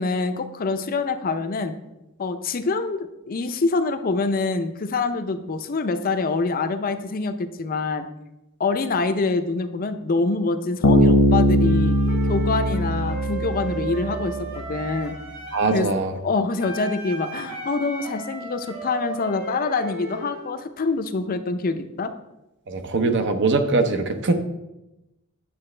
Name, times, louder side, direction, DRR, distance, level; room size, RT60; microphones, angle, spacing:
voice 1, 0.0-1.7 2.2-8.1 8.6-12.0 12.2-15.2 15.7-15.9 16.2-22.1, left 3 dB, 40° left, 9 dB, 0.5 m, -25 dB
Bass guitar, 10.8-14.3, equal, 80° left, 1.1 m, -20 dB
Wind instrument woodwind instrument, 11.6-15.8 16.6-20.5, right 2 dB, 75° right, 2.4 m, -35 dB
voice 2, 15.5-16.1 22.7-24.3, right 3 dB, 55° right, 7 dB, 0.8 m, -22 dB
9.6 x 6.7 x 3.3 m, 0.94 s
head